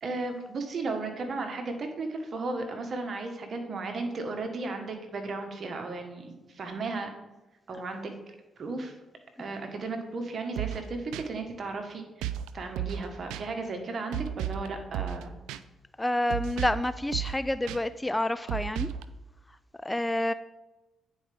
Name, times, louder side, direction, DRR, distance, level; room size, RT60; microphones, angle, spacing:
voice 1, 0.0-7.1 7.7-8.9 9.4-12.3 12.5-15.3, right 3 dB, 55° right, 5 dB, 1.3 m, -35 dB
sound 1, 10.6-10.8 11.1-11.2 12.2-12.5 12.8-13.0 13.3-13.4 14.1-14.7 14.9-15.2 15.5-15.6 16.3-16.8 17.1-17.4 17.7-17.8 18.5-19.0, right 11 dB, 90° right, 0.3 m, -33 dB
voice 2, 16.0-18.9 19.8-20.3, left 1 dB, 15° left, 13 dB, 0.3 m, -28 dB
9.4 x 4.6 x 3.5 m, 1.1 s
supercardioid pair, 65°, 0 cm